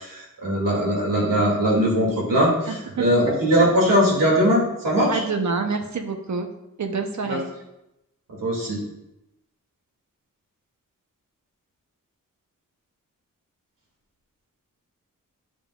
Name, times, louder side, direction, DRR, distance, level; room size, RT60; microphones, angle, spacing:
voice 1, 0.0-5.2 7.2-7.4 8.4-8.8, equal, 85° right, -4 dB, 2.4 m, -20 dB
voice 2, 2.7-3.3 5.1-6.5 6.8-7.5, right 4 dB, 60° right, 5 dB, 0.9 m, -27 dB
10.5 x 5.1 x 2.4 m, 0.89 s
wide cardioid pair, 85°, 32 cm